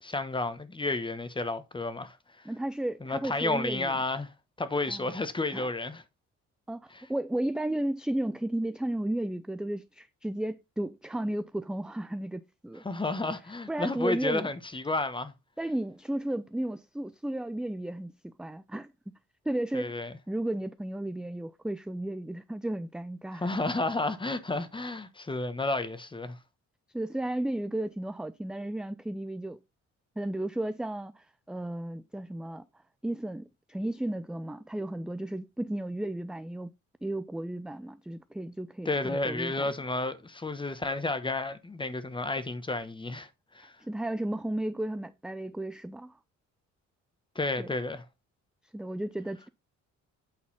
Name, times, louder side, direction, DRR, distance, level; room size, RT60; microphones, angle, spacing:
voice 1, 0.0-2.2 3.0-4.3 4.6-6.0 6.9-7.0 12.8-15.3 19.7-20.1 23.3-26.4 38.8-43.3 43.5-43.7 47.3-48.0, left 2 dB, 15° left, 1.1 m, -31 dB
voice 2, 2.4-4.0 4.9-5.1 5.5-5.7 6.7-12.8 13.7-14.5 15.6-18.9 19.5-23.5 26.9-29.6 30.2-32.6 33.0-36.7 37.0-39.7 43.8-46.2 47.6-47.7 48.7-49.5, right 1 dB, 5° right, 0.4 m, -34 dB
8.8 x 4.0 x 5.4 m
cardioid pair, 90°, 30 cm